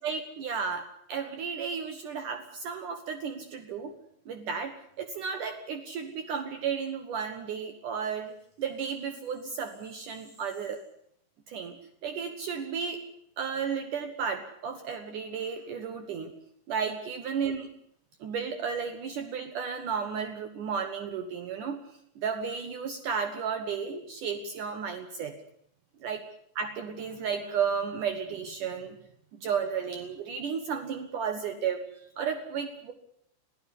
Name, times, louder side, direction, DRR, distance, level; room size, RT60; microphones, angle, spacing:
voice 1, 0.0-3.9 4.3-8.3 8.6-10.8 11.5-11.8 12.0-13.0 13.4-16.3 16.7-17.7 18.2-21.8 22.2-25.4 26.0-26.2 26.6-29.0 29.3-32.9, right 6 dB, 90° right, 7 dB, 1.8 m, -33 dB
22.0 x 14.5 x 9.9 m, 0.70 s
omnidirectional pair, 6.0 m